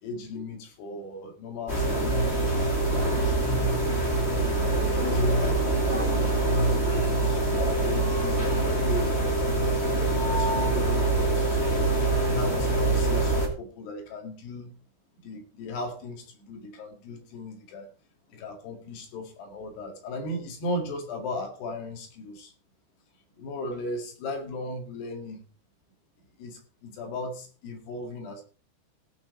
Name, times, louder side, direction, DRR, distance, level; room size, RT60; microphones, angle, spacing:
voice 1, 0.0-2.4 2.9-3.5 4.9-6.8 7.3-9.2 9.9-11.9 12.2-14.7 15.2-17.9 18.3-22.5 23.4-25.4 26.4-28.4, left 2 dB, 65° left, 3 dB, 4.0 m, -37 dB
sound 1, 1.7-13.5, right 2 dB, 30° left, 1.1 m, -24 dB
17.5 x 6.0 x 4.3 m, 0.37 s
omnidirectional pair, 5.2 m